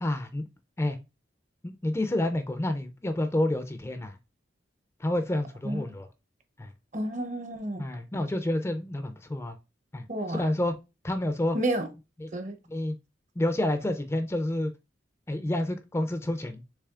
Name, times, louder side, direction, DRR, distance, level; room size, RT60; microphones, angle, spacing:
voice 1, 0.0-0.4 0.8-1.0 1.6-4.2 5.0-6.1 6.6-6.7 7.8-9.6 9.9-10.7 11.0-11.6 12.2-12.3 12.7-12.9 13.4-14.7 15.3-16.8, left 1 dB, 15° left, 0.4 m, -29 dB
voice 2, 6.9-7.9 10.1-10.5 11.5-11.9 12.3-12.6, right 1 dB, 45° right, 0.7 m, -31 dB
6.7 x 3.1 x 2.4 m
head